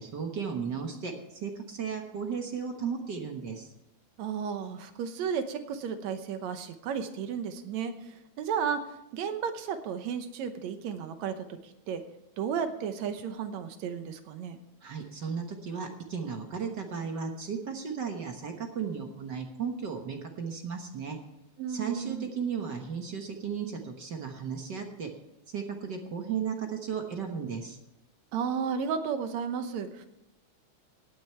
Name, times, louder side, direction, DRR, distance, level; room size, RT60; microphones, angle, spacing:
voice 1, 0.0-3.7 14.8-21.2 21.7-25.1 25.5-27.8, right 6 dB, 55° right, 4 dB, 1.3 m, -35 dB
voice 2, 4.2-8.8 9.1-12.0 12.4-14.6 21.6-22.3 28.3-30.1, right 7 dB, 75° right, 9 dB, 2.1 m, -33 dB
17.5 x 9.3 x 4.5 m, 0.89 s
omnidirectional pair, 3.4 m